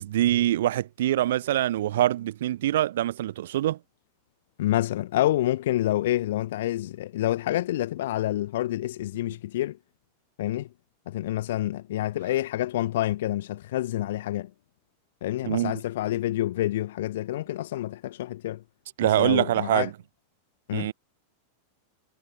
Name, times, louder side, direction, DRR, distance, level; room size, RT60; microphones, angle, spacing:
voice 1, 0.0-3.8 15.4-15.8 19.0-19.9 20.7-20.9, right 13 dB, 60° right, 0.6 m, -24 dB
voice 2, 4.6-9.8 10.4-10.7 11.1-14.5 15.2-18.6 19.0-19.9 20.7-20.9, left 14 dB, 55° left, 0.7 m, -28 dB
figure-of-eight pair, 90°, 0 cm